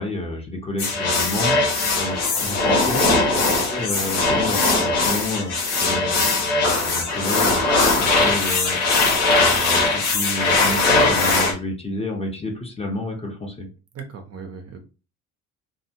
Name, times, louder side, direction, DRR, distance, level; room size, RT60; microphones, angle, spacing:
voice 1, 0.0-1.6 2.0-3.3 3.7-6.3 6.7-8.8 9.4-13.7, left 2 dB, 15° left, 1 dB, 1.0 m, -30 dB
sound 1, 0.8-11.5, left 3 dB, 90° left, 1.0 m, -20 dB
voice 2, 13.9-14.8, right 5 dB, 45° right, 4 dB, 0.7 m, -37 dB
2.5 x 2.4 x 2.9 m, 0.34 s
hypercardioid pair, 65°, 35 cm